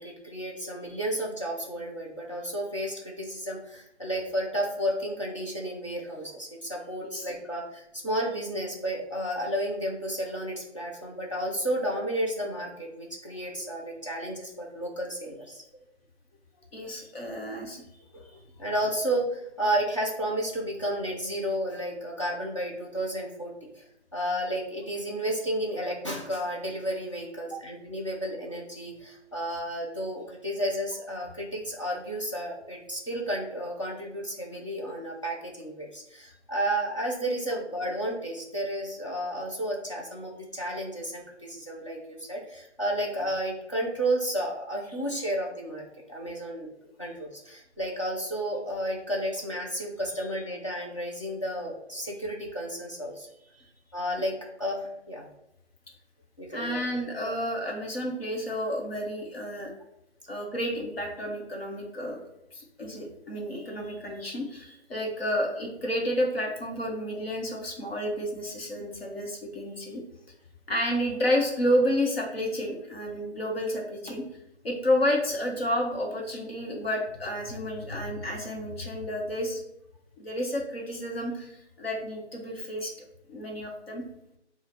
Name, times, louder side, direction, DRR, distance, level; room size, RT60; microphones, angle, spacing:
voice 1, 0.0-15.8 18.1-18.3 18.6-23.8 24.1-46.7 47.0-53.3 53.9-55.2 56.4-56.8, right 1 dB, 25° left, -3 dB, 0.6 m, -32 dB
voice 2, 16.7-18.0 27.5-27.6 56.5-59.7 60.3-62.2 62.5-70.0 70.7-74.2 74.6-79.6 80.2-82.9 83.3-84.0, equal, 60° left, 0 dB, 1.1 m, -30 dB
6.8 x 2.4 x 2.8 m, 0.82 s
hypercardioid pair, 175°, 35 cm